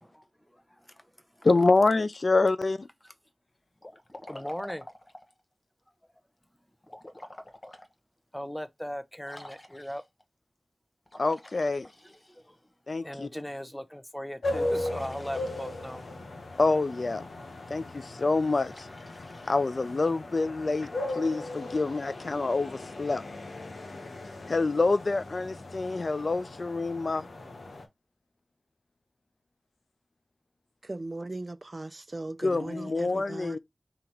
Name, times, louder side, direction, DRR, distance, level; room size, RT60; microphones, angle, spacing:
voice 1, 0.0-1.1 1.3-1.5 3.0-3.1 4.3-4.8 8.3-10.0 11.8-12.6 13.0-16.0, equal, 10° left, 0.8 m, -39 dB
voice 2, 1.4-2.9 11.2-11.9 12.9-13.3 16.6-17.3 17.7-18.9 19.5-23.2 24.5-27.3 32.4-33.6, left 3 dB, 65° left, 0.4 m, -26 dB
Liquid, 3.8-5.4 6.8-7.9 8.4-8.5 9.2-10.2 11.1-12.7 14.7-16.1 18.6-20.3, left 1 dB, 35° left, 1.0 m, -48 dB
sound 1, 14.4-27.9, left 2 dB, 85° left, 1.0 m, -38 dB
voice 3, 30.8-33.6, right 2 dB, 45° right, 0.4 m, -38 dB
3.9 x 2.9 x 4.4 m
cardioid pair, 40°, 0 cm